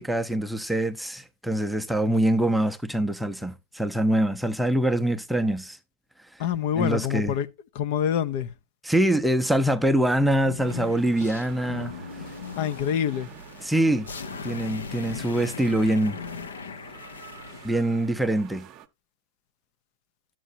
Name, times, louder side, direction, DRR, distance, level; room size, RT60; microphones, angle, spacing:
voice 1, 0.0-5.8 6.8-7.3 8.8-11.9 13.6-14.1 14.4-16.2 17.6-18.7, right 1 dB, ahead, 0.7 m, -24 dB
voice 2, 6.4-7.5 7.7-8.5 12.6-13.3, left 9 dB, 50° left, 0.7 m, -26 dB
sound 1, 10.3-17.7, left 5 dB, 80° left, 0.9 m, -38 dB
sound 2, 10.6-18.9, right 10 dB, 35° right, 0.8 m, -48 dB
11.0 x 7.5 x 2.7 m
hypercardioid pair, 105°, 0 cm